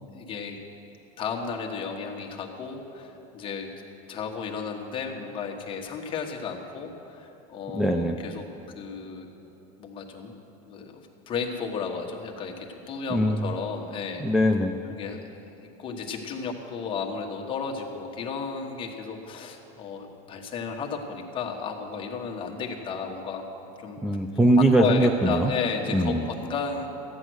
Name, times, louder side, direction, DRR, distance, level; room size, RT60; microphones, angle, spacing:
voice 1, 0.1-0.6 1.2-3.7 4.1-8.4 8.7-9.3 9.8-10.3 10.6-14.2 15.0-23.4 23.8-24.0 24.8-26.9, left 5 dB, 30° left, 1 dB, 1.3 m, -33 dB
voice 2, 7.7-8.2 13.1-13.6 14.2-14.7 24.0-25.5 25.9-26.3, right 1 dB, 5° right, 5 dB, 0.3 m, -21 dB
13.5 x 9.0 x 6.3 m, 3.0 s
cardioid pair, 150°, 17 cm